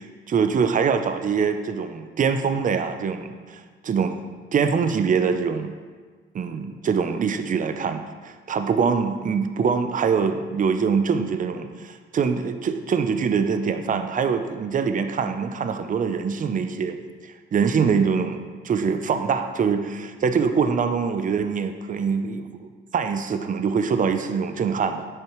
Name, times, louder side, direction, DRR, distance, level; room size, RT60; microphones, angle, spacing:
voice 1, 0.0-4.2 4.5-5.7 6.3-17.0 17.2-25.1, right 6 dB, 40° right, 8 dB, 0.6 m, -24 dB
10.0 x 6.8 x 3.1 m, 1.5 s
cardioid pair, 90°, 20 cm